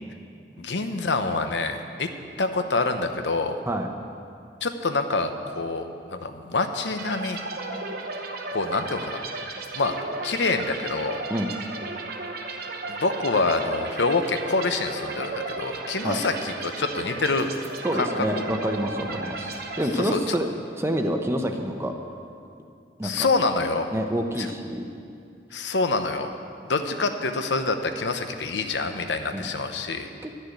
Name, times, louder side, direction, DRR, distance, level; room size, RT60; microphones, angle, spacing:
voice 1, 0.6-2.1 2.4-3.6 4.6-7.4 8.5-9.3 9.7-9.9 10.2-11.2 12.9-17.5 17.9-18.4 20.0-20.2 23.0-23.9 24.4-24.5 25.5-26.3 26.6-30.1, left 3 dB, 85° left, 7 dB, 0.9 m, -26 dB
sound 1, 7.0-20.5, right 3 dB, 60° right, 0.9 m, -35 dB
voice 2, 17.8-20.5 20.7-21.9 23.0-23.3 23.9-24.8 29.3-29.5 30.2-30.3, equal, 15° right, 4 dB, 0.7 m, -27 dB
11.5 x 6.6 x 9.3 m, 2.4 s
head